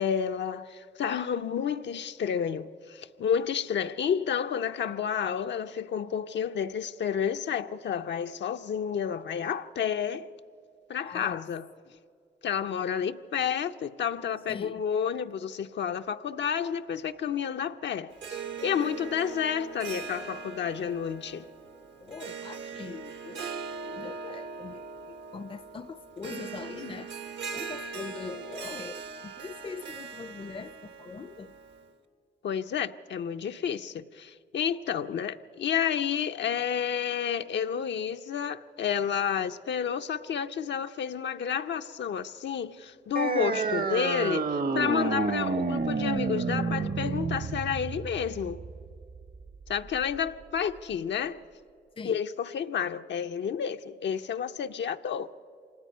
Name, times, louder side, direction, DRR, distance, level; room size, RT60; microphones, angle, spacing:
voice 1, 0.0-10.3 10.9-11.7 12.4-21.5 32.4-48.6 49.7-51.4 52.0-55.3, left 8 dB, 75° left, 0.6 m, -30 dB
voice 2, 11.0-11.4 11.9-12.0 14.5-14.8 22.0-23.4 23.8-27.1 27.5-31.5 52.0-52.2, left 5 dB, 30° left, 0.5 m, -42 dB
Harp, 18.1-31.9, right 5 dB, 75° right, 1.1 m, -40 dB
sound 1, 43.2-50.2, right 4 dB, 50° right, 0.9 m, -30 dB
25.0 x 19.0 x 5.5 m
cardioid pair, 75°, 19 cm